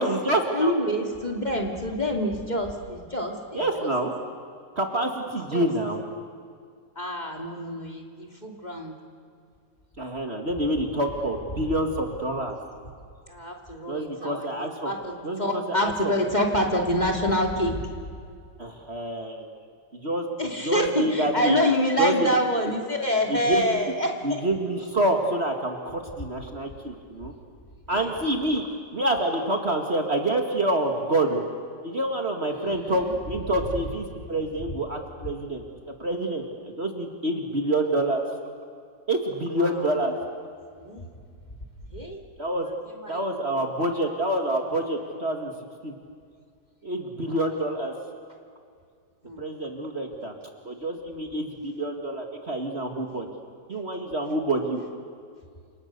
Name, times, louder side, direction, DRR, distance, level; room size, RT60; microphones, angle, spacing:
voice 1, 0.0-0.7 3.5-4.1 4.8-6.0 10.0-12.6 13.9-14.9 15.2-16.1 18.6-19.5 19.9-20.3 20.6-21.6 22.0-22.3 23.5-23.8 24.2-27.3 27.9-28.7 28.9-31.4 31.8-35.6 36.0-36.4 36.8-38.2 39.1-40.1 42.4-42.7 43.1-45.5 45.8-45.9 46.8-47.9 49.4-50.3 50.6-53.3 53.7-54.8, right 1 dB, 35° right, 3 dB, 2.2 m, -27 dB
voice 2, 0.5-3.9 5.5-5.7 7.0-8.9 13.3-17.7 20.4-24.4 27.9-28.1 32.5-33.2 39.5-39.9 40.8-41.1 41.9-42.2 42.9-43.6 47.2-47.4 49.2-49.4, equal, 25° left, 1 dB, 2.8 m, -27 dB
30.0 x 27.0 x 6.7 m, 2.2 s
omnidirectional pair, 2.0 m